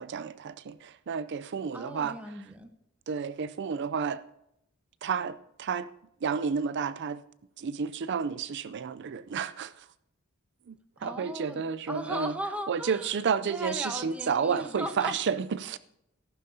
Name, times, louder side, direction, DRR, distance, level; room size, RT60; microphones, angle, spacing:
voice 1, 0.0-2.2 3.1-4.2 5.0-5.9 6.2-7.2 7.6-9.9 10.7-10.8 11.0-12.3 12.7-15.8, right 6 dB, 55° right, 0.4 m, -31 dB
voice 2, 1.7-2.7 11.0-11.6 11.9-13.2 13.5-15.2, equal, 5° right, 1.0 m, -37 dB
13.5 x 12.0 x 2.8 m
head